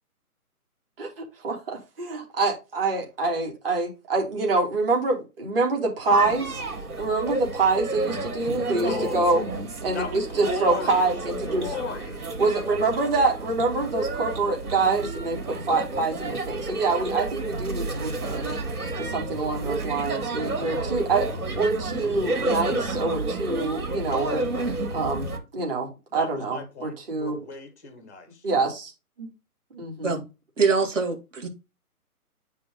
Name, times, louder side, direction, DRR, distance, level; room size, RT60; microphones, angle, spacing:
voice 1, 1.0-6.6 7.0-9.4 9.8-11.7 12.4-18.6 19.0-21.3 21.6-24.4 24.9-27.4 28.4-28.9 29.2-29.3 29.7-30.2, right 3 dB, 40° right, 3.1 m, -26 dB
sound 1, 6.1-25.4, right 2 dB, 70° right, 3.6 m, -31 dB
voice 2, 8.8-9.2 9.9-11.1 11.5-12.3 26.1-28.5, left 3 dB, 10° left, 0.6 m, -36 dB
voice 3, 30.6-31.5, right 4 dB, 55° right, 2.5 m, -23 dB
9.4 x 3.8 x 3.8 m
hypercardioid pair, 165°, 45 cm